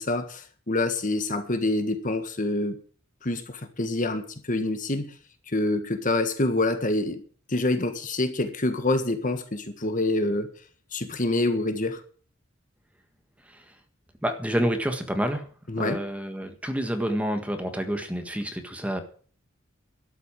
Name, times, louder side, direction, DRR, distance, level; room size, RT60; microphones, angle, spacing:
voice 1, 0.0-2.8 3.2-5.1 5.5-7.2 7.5-10.5 10.9-12.0 15.7-16.0, left 2 dB, 40° left, 1.6 m, -26 dB
voice 2, 13.4-13.7 14.2-15.5 15.8-19.0, equal, 5° right, 1.6 m, -28 dB
12.5 x 8.3 x 8.8 m
head